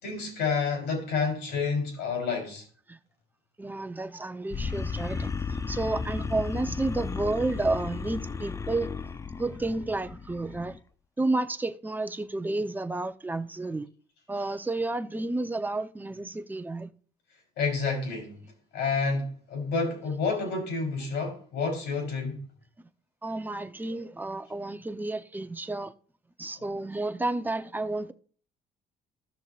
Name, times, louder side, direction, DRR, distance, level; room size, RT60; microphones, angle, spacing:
voice 1, 0.0-2.6 17.6-18.4 18.7-22.4, left 4 dB, 80° left, 3.8 m, -29 dB
voice 2, 3.6-8.9 9.4-10.8 11.2-13.9 14.3-16.9 23.2-25.9 26.4-28.1, right 2 dB, 10° right, 0.7 m, -31 dB
sound 1, 4.5-10.8, left 5 dB, 20° left, 0.4 m, -34 dB
15.5 x 6.6 x 2.4 m
cardioid pair, 110°, 17 cm